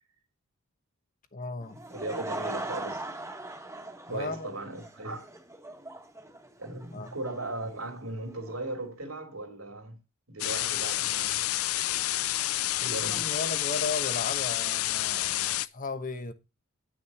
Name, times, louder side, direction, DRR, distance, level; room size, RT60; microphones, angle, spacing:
voice 1, 1.3-1.9 4.1-4.5 6.9-7.2 12.8-16.3, left 3 dB, 40° left, 1.1 m, -36 dB
Laughter / Crowd, 1.6-8.5, right 2 dB, 15° right, 1.5 m, -40 dB
voice 2, 1.9-3.1 4.1-5.3 6.6-10.0 10.3-11.4 12.8-13.3, right 2 dB, 80° right, 3.0 m, -37 dB
sound 1, 10.4-15.7, left 15 dB, 80° left, 0.5 m, -29 dB
9.6 x 6.3 x 4.2 m
head